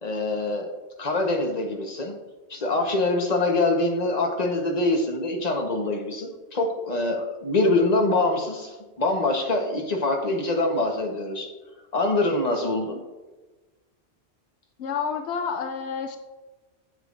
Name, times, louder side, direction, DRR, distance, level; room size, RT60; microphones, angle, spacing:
voice 1, 0.0-0.7 1.0-2.1 2.5-11.5 11.9-13.0, left 2 dB, 40° left, 2 dB, 1.2 m, -24 dB
voice 2, 14.8-16.2, left 6 dB, 80° left, 6 dB, 0.9 m, -29 dB
8.8 x 7.6 x 2.5 m, 1.2 s
omnidirectional pair, 1.1 m